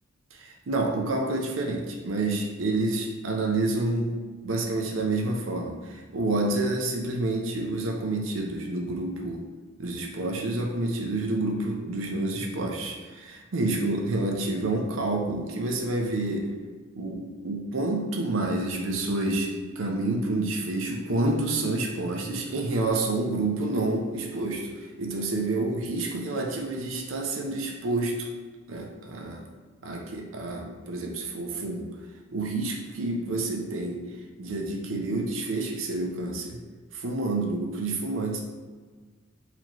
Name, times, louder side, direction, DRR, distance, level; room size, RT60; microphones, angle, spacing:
voice 1, 0.3-4.2 4.4-9.4 9.8-16.5 16.9-19.5 19.8-24.7 25.0-28.3 28.7-29.5 29.8-31.9 32.3-34.0 34.4-36.6 36.9-38.4, right 2 dB, 85° right, 1 dB, 0.5 m, -28 dB
4.2 x 2.7 x 3.0 m, 1.4 s
head